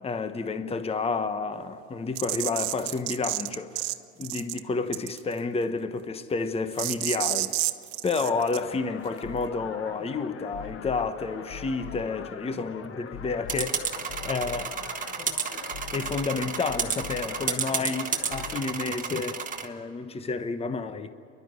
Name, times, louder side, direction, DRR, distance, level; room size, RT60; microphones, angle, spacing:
voice 1, 0.0-3.9 4.2-7.6 8.0-14.8 15.9-21.1, left 4 dB, 15° left, 1.0 m, -30 dB
sound 1, 2.1-3.9 4.2-4.6 4.9-5.3 6.8-8.6, right 20 dB, 65° right, 0.9 m, -29 dB
sound 2, 8.2-18.6, left 7 dB, 35° left, 1.1 m, -42 dB
sound 3, 13.5-19.6, right 6 dB, 20° right, 1.6 m, -31 dB
29.0 x 12.0 x 9.3 m
supercardioid pair, 105°, 38 cm